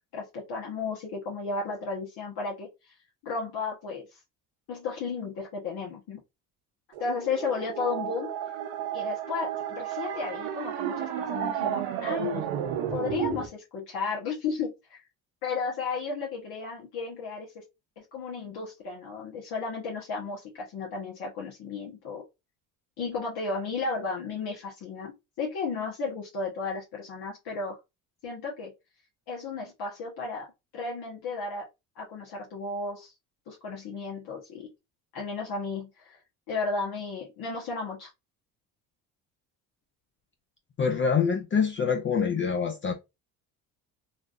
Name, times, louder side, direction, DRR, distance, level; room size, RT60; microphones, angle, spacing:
voice 1, 0.1-3.0 3.2-4.2 4.7-6.2 7.0-8.3 8.9-12.4 12.9-15.0 15.4-17.6 18.0-22.2 23.0-27.8 28.2-28.7 29.3-30.5 30.7-31.7 31.9-33.1 33.5-34.7 35.1-36.2 36.5-38.1, left 4 dB, 65° left, 1.2 m, -34 dB
sound 1, 6.9-13.5, right 10 dB, 85° right, 0.8 m, -32 dB
voice 2, 40.8-42.9, left 6 dB, 30° left, 0.5 m, -25 dB
3.2 x 2.6 x 2.5 m
supercardioid pair, 85°, 41 cm